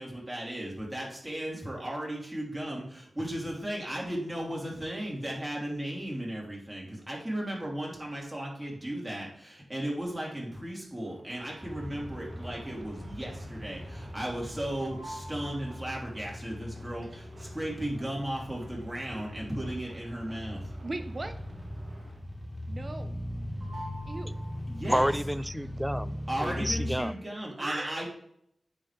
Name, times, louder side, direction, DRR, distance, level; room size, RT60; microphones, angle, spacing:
voice 1, 0.0-20.6 24.7-25.1 26.3-28.1, right 1 dB, 20° right, 2.8 m, -35 dB
sound 1, 11.0-22.5 22.8-23.3 23.6-24.9, right 1 dB, 65° right, 2.0 m, -50 dB
sound 2, 11.6-27.0, left 1 dB, 15° left, 0.8 m, -40 dB
voice 2, 20.8-21.4 22.7-23.1 24.1-24.4 27.6-28.0, right 2 dB, 45° right, 0.7 m, -37 dB
voice 3, 24.9-27.2, equal, ahead, 0.3 m, -30 dB
9.5 x 4.1 x 3.3 m
cardioid pair, 45°, 0 cm